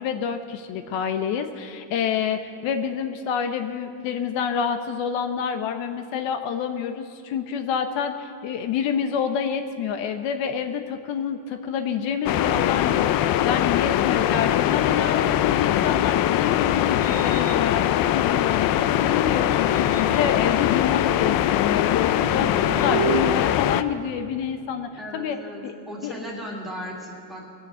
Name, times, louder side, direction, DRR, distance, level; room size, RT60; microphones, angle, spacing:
voice 1, 0.0-25.4 25.6-25.7 26.0-26.1, left 7 dB, 80° left, 7 dB, 1.1 m, -28 dB
sound 1, 12.3-23.8, left 12 dB, 50° left, 0.5 m, -22 dB
sound 2, 16.1-18.9 19.5-24.6, right 8 dB, 30° right, 1.1 m, -35 dB
voice 2, 25.0-27.4, equal, ahead, -3 dB, 2.5 m, -36 dB
20.0 x 7.0 x 8.1 m, 2.4 s
cardioid pair, 160°, 44 cm